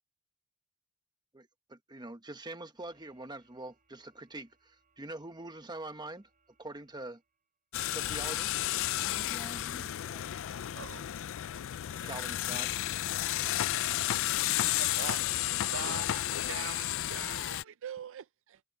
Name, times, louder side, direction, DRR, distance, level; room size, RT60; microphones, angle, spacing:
voice 1, 1.3-6.3 6.6-7.2 7.9-8.5 11.9-12.8, right 2 dB, 20° right, 1.2 m, -44 dB
sound 1, 2.7-7.6, right 4 dB, 40° right, 6.4 m, -74 dB
sound 2, 7.7-17.6, left 13 dB, 65° left, 0.4 m, -32 dB
voice 2, 9.1-10.3 12.5-13.7, left 1 dB, 15° left, 0.8 m, -51 dB
voice 3, 10.7-11.1 14.8-15.2 15.7-18.6, right 8 dB, 60° right, 0.4 m, -43 dB
head